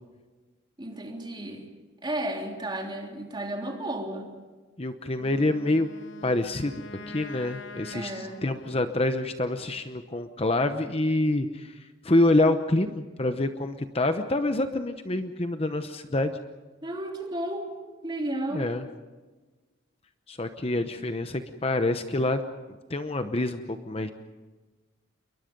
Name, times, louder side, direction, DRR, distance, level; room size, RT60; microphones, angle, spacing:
voice 1, 0.8-1.6 2.0-4.3 7.9-8.4 16.8-17.8 18.0-18.7, right 1 dB, 25° right, 1 dB, 3.3 m, -33 dB
voice 2, 4.8-5.9 6.2-11.7 12.0-16.3 18.5-18.8 20.3-22.4 22.9-24.1, left 2 dB, 30° left, 8 dB, 0.9 m, -26 dB
Wind instrument woodwind instrument, 5.1-9.3, left 2 dB, 75° left, 1.3 m, -45 dB
28.5 x 23.0 x 5.3 m, 1.3 s
head